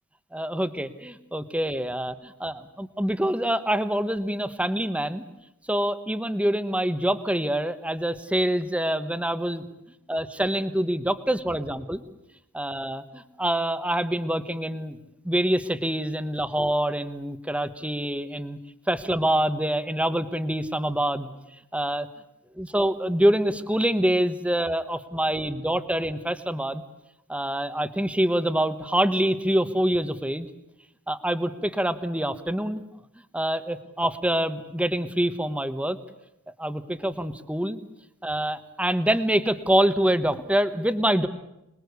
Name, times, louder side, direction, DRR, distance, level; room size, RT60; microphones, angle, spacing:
voice 1, 0.3-5.2 5.7-9.7 10.1-12.0 12.5-15.0 15.2-18.6 18.9-21.3 21.7-22.1 22.6-26.8 27.3-30.5 31.1-32.8 33.3-36.0 36.6-37.8 38.2-41.3, right 1 dB, 5° right, 12 dB, 1.2 m, -25 dB
26.0 x 21.0 x 8.3 m, 0.86 s
head